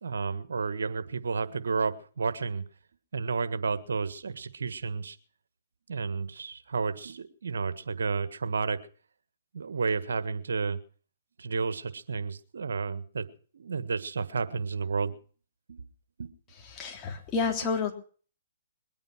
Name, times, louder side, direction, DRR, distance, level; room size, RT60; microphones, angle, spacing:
voice 1, 0.0-2.6 3.1-5.2 5.9-8.8 9.5-10.8 11.4-13.3 13.5-15.2 15.7-15.9 16.2-16.3, right 5 dB, 75° right, 12 dB, 1.5 m, -31 dB
voice 2, 16.6-17.9, left 5 dB, 25° left, 1 dB, 3.4 m, -30 dB
21.5 x 9.0 x 6.1 m, 0.43 s
hypercardioid pair, 130°, 0 cm